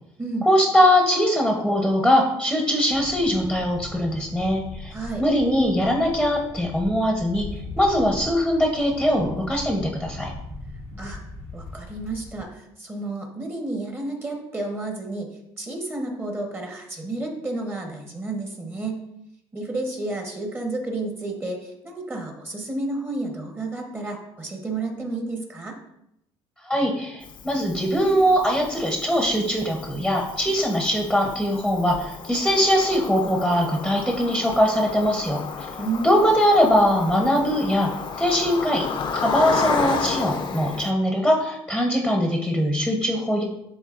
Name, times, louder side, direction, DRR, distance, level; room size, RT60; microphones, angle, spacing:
voice 1, 0.5-4.9 5.2-7.5 7.8-10.3 26.7-35.7 36.0-37.9 38.2-38.9 39.1-43.4, equal, 5° right, 0 dB, 1.0 m, -21 dB
sound 1, 2.9-12.4, left 2 dB, 85° right, 2.2 m, -39 dB
voice 2, 4.9-5.2 11.0-11.2 11.5-15.3 15.6-19.0 19.5-25.8 35.8-36.2, right 2 dB, 20° right, 2 dB, 1.2 m, -31 dB
Cricket, 27.2-40.9, left 6 dB, 50° left, 0.7 m, -32 dB
10.5 x 3.6 x 2.5 m, 0.81 s
cardioid pair, 120°, 11 cm